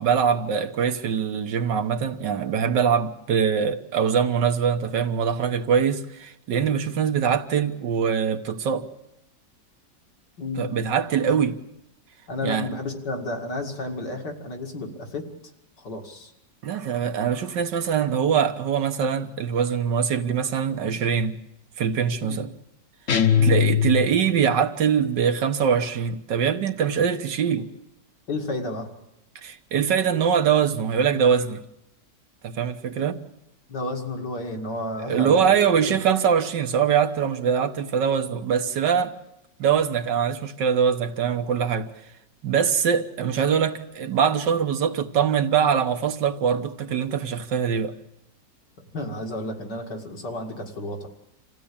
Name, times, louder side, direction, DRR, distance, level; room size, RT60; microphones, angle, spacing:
voice 1, 0.0-8.9 10.6-11.6 12.4-12.7 16.6-21.4 21.8-22.5 23.4-27.7 29.4-31.6 32.4-33.2 35.0-39.1 39.6-41.9 42.4-48.0, right 7 dB, 85° right, 1.8 m, -23 dB
voice 2, 10.4-10.8 12.3-15.3 15.8-16.3 22.3-22.4 23.3-23.5 28.3-28.9 33.7-36.0 48.9-51.1, left 2 dB, 75° left, 2.9 m, -32 dB
sound 1, 23.1-24.4, left 8 dB, 50° left, 1.4 m, -20 dB
27.0 x 16.0 x 8.7 m
omnidirectional pair, 1.9 m